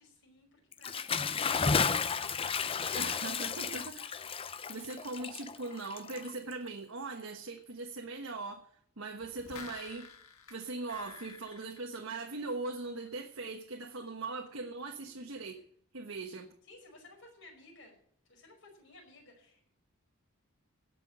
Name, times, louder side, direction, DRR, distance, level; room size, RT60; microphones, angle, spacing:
voice 1, 0.0-2.5 4.2-4.6 16.7-18.0 18.3-19.7, left 2 dB, 60° left, 1 dB, 5.3 m, -57 dB
Bathtub (filling or washing) / Splash splatter, 0.7-6.7, left 5 dB, 25° left, 0.5 m, -33 dB
voice 2, 2.9-4.2 4.7-8.6 9.0-10.1 10.5-15.6 15.9-16.5, right 3 dB, 80° right, 3 dB, 1.3 m, -40 dB
sound 1, 9.2-12.7 13.1-13.2, left 4 dB, 85° left, 1.6 m, -51 dB
17.5 x 6.1 x 8.7 m, 0.67 s
head